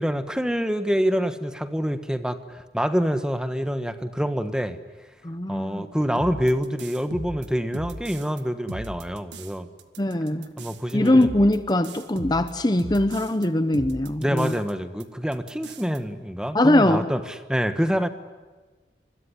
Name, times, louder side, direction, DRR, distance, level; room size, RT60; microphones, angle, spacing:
voice 1, 0.0-4.8 5.5-9.7 10.6-11.3 14.2-17.2 17.5-18.1, equal, 5° right, 10 dB, 1.3 m, -26 dB
voice 2, 5.2-5.8 10.0-10.5 10.9-14.5 16.5-17.1, left 1 dB, 25° left, 11 dB, 0.9 m, -21 dB
sound 1, 6.2-8.4 8.7-9.5 9.8-13.5 13.7-14.7 15.0-15.1 15.3-16.0, right 1 dB, 85° right, 1.8 m, -38 dB
25.5 x 22.0 x 10.0 m, 1.3 s
head